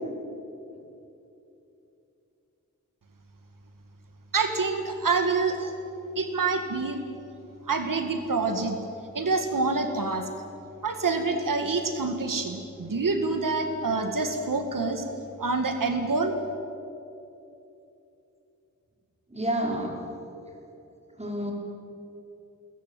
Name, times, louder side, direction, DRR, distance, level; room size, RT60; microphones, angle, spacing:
voice 1, 4.3-5.7 6.2-7.0 7.7-8.8 9.1-10.3 10.8-15.1 15.4-16.3, right 3 dB, 85° right, 6 dB, 1.9 m, -26 dB
voice 2, 19.3-20.0 21.2-21.5, right 1 dB, 20° right, 0 dB, 5.1 m, -29 dB
22.0 x 21.0 x 9.2 m, 2.9 s
wide cardioid pair, 90°, 32 cm